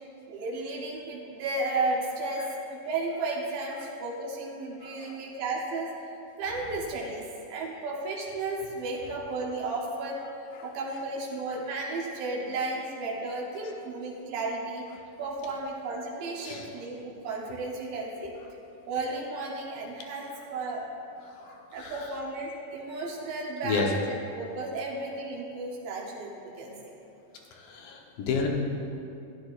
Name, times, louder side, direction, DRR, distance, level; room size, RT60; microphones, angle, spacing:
voice 1, 0.3-5.9 6.4-10.2 10.6-14.8 15.2-18.3 18.9-20.8 21.7-26.7, right 2 dB, 85° right, -3 dB, 2.7 m, -33 dB
voice 2, 4.8-5.2 8.6-8.7 10.5-10.7 13.6-13.7 16.4-16.7 21.2-22.2 23.6-23.9 27.5-28.5, left 4 dB, 80° left, 0 dB, 2.6 m, -32 dB
13.0 x 10.5 x 2.5 m, 2.7 s
omnidirectional pair, 3.9 m